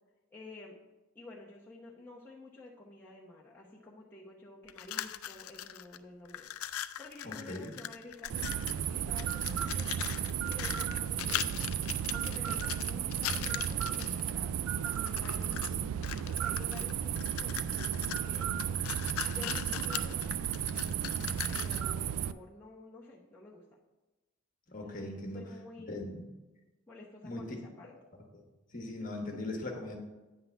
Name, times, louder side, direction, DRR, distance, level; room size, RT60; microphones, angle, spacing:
voice 1, 0.3-0.8 1.1-6.5 7.0-10.1 10.5-11.7 12.1-15.7 16.3-18.5 19.2-20.3 21.5-23.6 24.8-26.0 26.9-27.9 29.3-29.4, left 2 dB, 10° left, -6 dB, 0.8 m, -51 dB
sound 1, 4.7-6.0 6.3-8.8 9.2-14.3 14.9-15.7 16.0-21.9, left 12 dB, 80° left, 0.4 m, -40 dB
voice 2, 7.2-7.7 15.6-15.9 24.7-25.4 25.9-26.3 27.2-27.6 28.3-28.4 28.7-30.0, left 2 dB, 35° left, 1 dB, 1.2 m, -40 dB
sound 2, 8.3-22.3, right 9 dB, 80° right, 0.3 m, -34 dB
9.2 x 3.9 x 6.8 m, 1.1 s
head